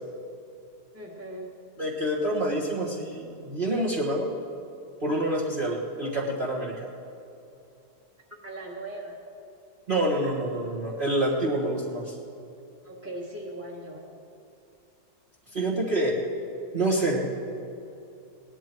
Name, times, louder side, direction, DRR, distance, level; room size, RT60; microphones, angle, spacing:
voice 1, 0.9-1.5 8.3-9.2 12.8-14.1, right 1 dB, 10° right, -3 dB, 1.4 m, -39 dB
voice 2, 1.8-4.3 5.0-6.9 9.9-12.2 15.5-16.2 16.7-17.4, right 1 dB, 30° right, -4 dB, 1.5 m, -27 dB
18.5 x 11.0 x 4.6 m, 2.7 s
omnidirectional pair, 1.9 m